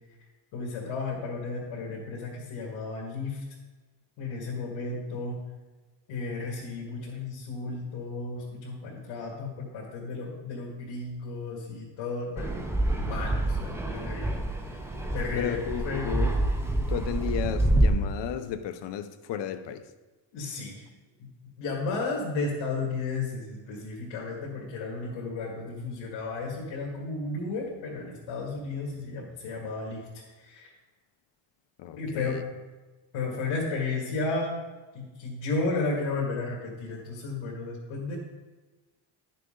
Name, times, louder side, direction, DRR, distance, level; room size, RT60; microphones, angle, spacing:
voice 1, 0.5-3.4 4.2-5.4 6.1-12.6 13.0-14.4 14.7-14.9 15.1-15.6 15.8-16.1 20.3-20.9 21.2-21.3 21.6-30.0 30.4-30.7 32.0-32.3 33.1-34.5 34.9-38.2, left 3 dB, 85° left, -4 dB, 2.2 m, -33 dB
Fixed-wing aircraft airplane, 12.4-17.9, right 1 dB, 5° right, 0.6 m, -27 dB
voice 2, 15.3-16.3 16.9-19.9 21.9-22.0 31.8-32.4, left 9 dB, 65° left, 11 dB, 0.8 m, -33 dB
11.5 x 6.7 x 3.8 m, 1.2 s
cardioid pair, 155°, 46 cm